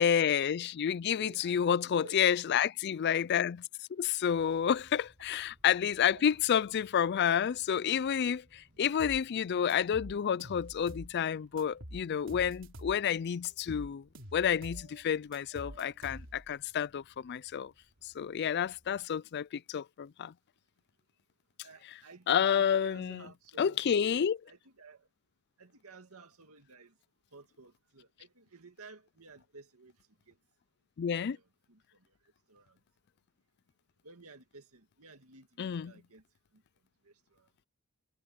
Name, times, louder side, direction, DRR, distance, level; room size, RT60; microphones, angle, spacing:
voice 1, 0.0-3.6 3.9-14.1 14.3-17.7 18.0-20.3 22.3-23.2 23.6-24.4 31.0-31.4 35.6-35.9, left 8 dB, 50° left, 0.3 m, -29 dB
voice 2, 0.9-2.7 6.1-6.2 8.7-8.9 21.6-25.1 25.6-27.0 27.3-30.4 31.2-32.8 34.0-36.2 36.5-36.6 37.0-37.5, right 3 dB, 85° right, 2.1 m, -55 dB
sound 1, 4.3-19.1, right 1 dB, 40° right, 7.5 m, -65 dB
sound 2, 9.0-9.2 9.7-11.1 11.6-13.0 13.4-14.9 15.3-16.5, equal, 60° right, 3.7 m, -46 dB
head